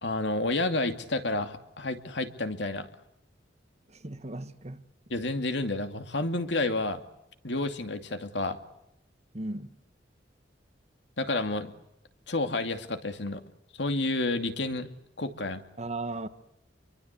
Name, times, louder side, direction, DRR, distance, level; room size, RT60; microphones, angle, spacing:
voice 1, 0.0-2.9 5.1-7.0 7.4-8.6 11.2-11.7 12.3-13.4 13.8-14.9 15.2-15.6, left 2 dB, 75° left, 2.6 m, -30 dB
voice 2, 3.9-4.8 9.3-9.7 15.8-16.3, right 2 dB, 40° right, 1.5 m, -36 dB
28.0 x 23.5 x 8.4 m
head